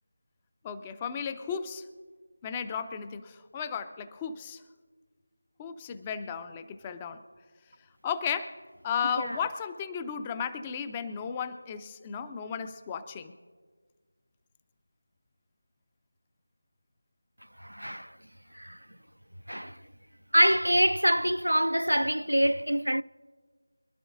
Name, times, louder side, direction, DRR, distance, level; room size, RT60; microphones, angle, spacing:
voice 1, 0.6-1.9 2.4-4.6 5.6-7.2 8.0-13.3, left 7 dB, 15° left, 0.5 m, -34 dB
voice 2, 17.6-18.2 18.5-18.8 19.5-19.8 20.3-23.0, equal, 85° right, 0.4 m, -25 dB
25.5 x 11.5 x 2.6 m
figure-of-eight pair, 165°, 0 cm